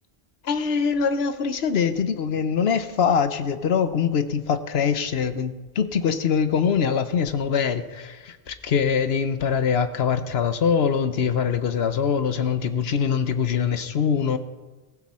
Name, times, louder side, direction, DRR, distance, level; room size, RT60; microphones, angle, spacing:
voice 1, 0.4-14.4, left 6 dB, 70° left, 11 dB, 1.1 m, -23 dB
15.5 x 15.5 x 4.3 m, 1.2 s
omnidirectional pair, 1.1 m